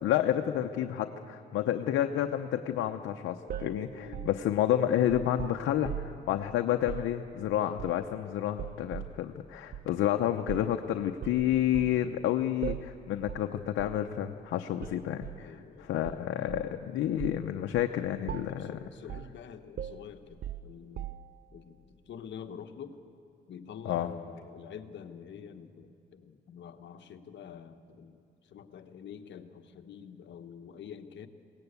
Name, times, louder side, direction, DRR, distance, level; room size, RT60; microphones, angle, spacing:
voice 1, 0.0-18.8 23.8-24.1, left 11 dB, 85° left, 5 dB, 0.8 m, -30 dB
voice 2, 1.5-2.0 3.9-4.4 15.4-15.9 18.5-21.1 21.5-23.0 23.5-31.3, left 7 dB, 65° left, 8 dB, 1.2 m, -47 dB
sound 1, 3.5-6.3 6.8-7.1 7.8-8.2 8.6-9.2 9.7-9.9 10.5-10.8 11.2-12.0 12.6-13.0 13.3-13.5 13.8-14.0 14.8-15.4 16.0-16.8 17.2-17.5 17.8-18.0 18.3-18.7 19.1-19.4 19.8-21.4, right 10 dB, 50° right, 0.5 m, -40 dB
21.0 x 18.0 x 8.2 m, 2.5 s
cardioid pair, 90°, 20 cm